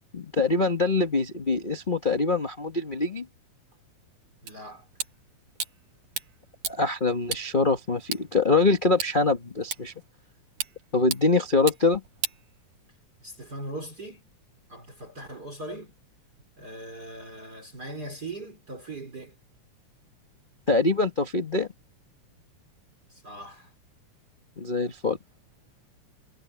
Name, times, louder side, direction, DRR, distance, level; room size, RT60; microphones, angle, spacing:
voice 1, 0.1-3.3 6.7-9.9 10.9-12.0 20.7-21.7 24.6-25.2, left 3 dB, 80° left, 0.4 m, -24 dB
voice 2, 4.4-4.9 13.2-14.2 14.7-15.9 16.6-19.3 23.1-23.7, right 2 dB, 30° right, 4.4 m, -40 dB
sound 1, 4.5-13.1, right 7 dB, 80° right, 4.4 m, -38 dB
omnidirectional pair, 3.5 m